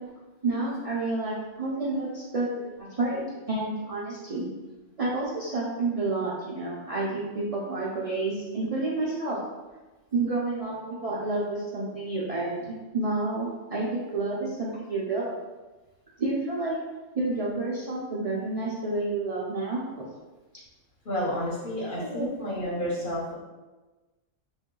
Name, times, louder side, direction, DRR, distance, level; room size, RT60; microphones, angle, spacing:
voice 1, 0.4-3.2 3.5-4.5 5.0-9.4 10.1-15.3 16.2-16.7 17.1-20.0 22.0-22.3, right 2 dB, 45° right, -6 dB, 0.5 m, -29 dB
voice 2, 21.0-23.3, equal, 45° left, -6 dB, 1.2 m, -30 dB
3.6 x 2.6 x 3.7 m, 1.2 s
omnidirectional pair, 1.3 m